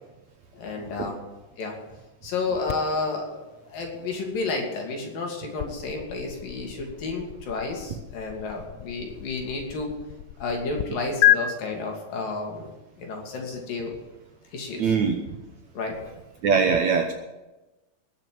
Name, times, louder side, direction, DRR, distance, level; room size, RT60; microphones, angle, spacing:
voice 1, 0.5-1.2 1.6-1.7 2.2-10.0 10.4-14.0 14.5-14.9 15.7-16.0, left 3 dB, 65° left, 1 dB, 4.4 m, -31 dB
sound 1, 2.7-10.9 11.2-11.4, left 14 dB, 80° left, 2.0 m, -30 dB
voice 2, 14.8-15.4 16.4-17.1, right 5 dB, 65° right, 4 dB, 2.0 m, -22 dB
20.5 x 7.4 x 7.9 m, 1.1 s
omnidirectional pair, 4.4 m